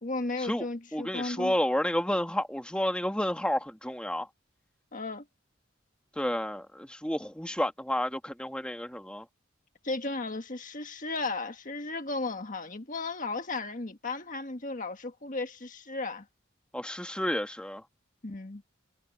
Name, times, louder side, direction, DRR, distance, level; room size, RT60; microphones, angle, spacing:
voice 1, 0.0-1.5 4.9-5.2 9.8-16.2 18.2-18.6, left 3 dB, 40° left, 1.6 m, -35 dB
voice 2, 0.9-4.3 6.2-9.2 16.7-17.8, left 1 dB, 5° left, 1.6 m, -30 dB
head